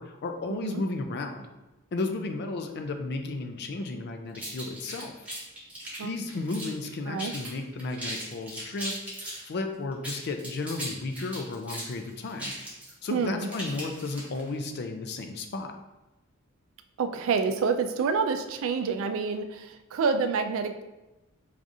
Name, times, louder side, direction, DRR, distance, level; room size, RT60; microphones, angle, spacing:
voice 1, 0.0-1.5 1.9-5.1 6.0-12.5 13.0-15.7, left 3 dB, 50° left, 6 dB, 0.4 m, -33 dB
sound 1, 4.3-6.9 7.2-7.5 7.8-9.4 9.9-14.5, right 1 dB, 5° right, 0.9 m, -38 dB
voice 2, 13.1-13.5 17.0-20.8, right 5 dB, 65° right, 7 dB, 0.3 m, -28 dB
4.6 x 2.5 x 2.6 m, 1.0 s
head